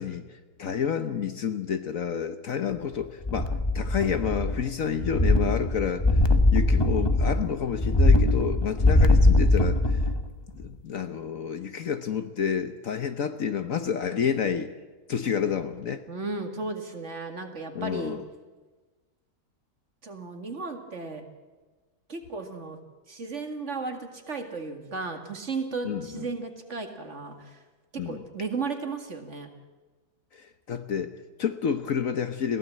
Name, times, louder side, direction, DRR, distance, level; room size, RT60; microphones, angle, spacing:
voice 1, 0.0-6.2 6.5-10.0 10.5-14.7 15.1-16.0 17.7-18.2 25.8-26.3 28.0-28.2 30.3-32.6, left 7 dB, 55° left, 10 dB, 1.2 m, -29 dB
sound 1, 3.2-4.7 5.0-10.3 10.6-10.7, left 2 dB, 20° left, 1.0 m, -21 dB
voice 2, 16.1-18.2 20.0-21.3 22.1-22.8 23.1-27.6 27.9-29.5, right 4 dB, 45° right, 6 dB, 2.2 m, -35 dB
21.5 x 16.0 x 7.5 m, 1.3 s
omnidirectional pair, 1.8 m